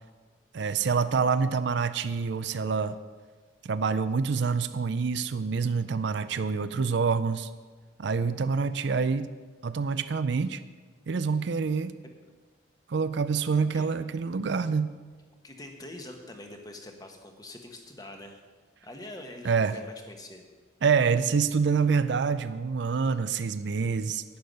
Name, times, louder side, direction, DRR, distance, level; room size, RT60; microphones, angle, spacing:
voice 1, 0.5-3.0 3.6-7.5 8.0-9.3 9.6-10.6 11.1-12.0 12.9-14.9 19.4-19.7 20.8-24.2, right 5 dB, 60° right, 13 dB, 0.4 m, -26 dB
voice 2, 15.4-18.4 18.8-20.5, left 1 dB, 20° left, 4 dB, 1.1 m, -44 dB
11.5 x 9.5 x 5.4 m, 1.4 s
head